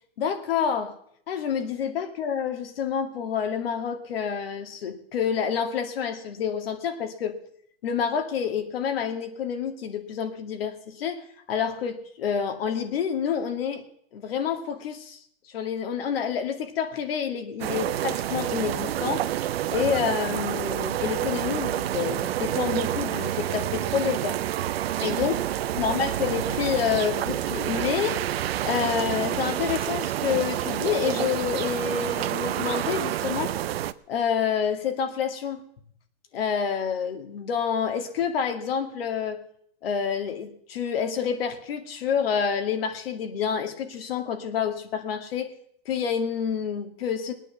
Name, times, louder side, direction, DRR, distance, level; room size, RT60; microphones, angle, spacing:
voice 1, 0.2-1.0 1.3-7.4 7.8-13.8 14.1-15.2 15.4-19.3 19.7-24.4 25.0-25.4 25.8-28.2 28.6-33.5 34.1-35.6 36.3-39.4 39.8-45.5 45.9-47.3, left 7 dB, 70° left, 7 dB, 2.3 m, -28 dB
sound 1, 17.6-33.9, right 12 dB, 75° right, 0.8 m, -28 dB
19.5 x 9.0 x 7.1 m, 0.67 s
hypercardioid pair, 140°, 30 cm